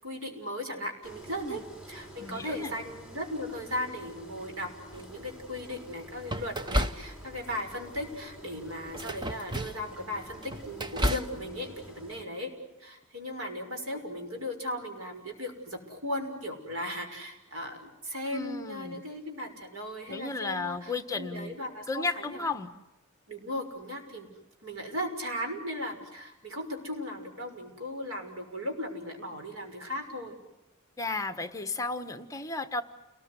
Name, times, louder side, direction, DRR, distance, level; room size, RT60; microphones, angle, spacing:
voice 1, 0.0-1.6 1.9-12.5 12.8-22.5 23.3-24.3 24.6-30.3, left 1 dB, 80° right, 4 dB, 6.4 m, -37 dB
Engine, 1.0-12.2, equal, 5° right, 4.5 m, -49 dB
voice 2, 2.2-2.7 18.3-19.0 20.1-21.6 21.9-22.7 31.0-32.8, left 3 dB, 15° left, 9 dB, 1.3 m, -34 dB
sound 1, 4.9-5.4 6.3-7.5 7.9-8.2 8.9-9.9 10.3-11.4, equal, 20° right, 1.0 m, -32 dB
30.0 x 20.5 x 9.8 m, 0.97 s
head